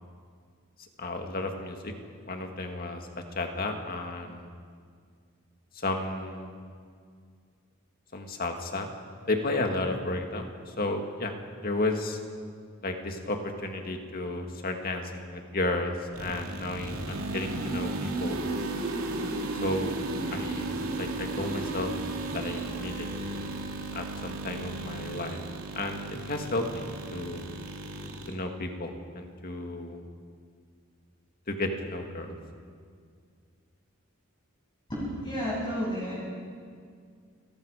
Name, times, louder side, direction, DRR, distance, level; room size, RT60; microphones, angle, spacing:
voice 1, 1.0-1.9 2.3-3.0 3.4-4.5 5.8-6.5 8.1-8.9 9.3-11.3 11.6-12.2 12.8-18.4 19.6-19.9 20.3-21.9 22.3-23.1 23.9-25.4 25.7-26.8 27.1-27.4 28.3-30.0 31.5-32.3, left 2 dB, 45° left, 3 dB, 2.1 m, -33 dB
sound 1, 16.1-28.3, right 2 dB, 90° right, 2.6 m, -34 dB
voice 2, 34.9-36.2, equal, 20° left, -7 dB, 7.4 m, -31 dB
29.0 x 19.0 x 5.0 m, 2.1 s
head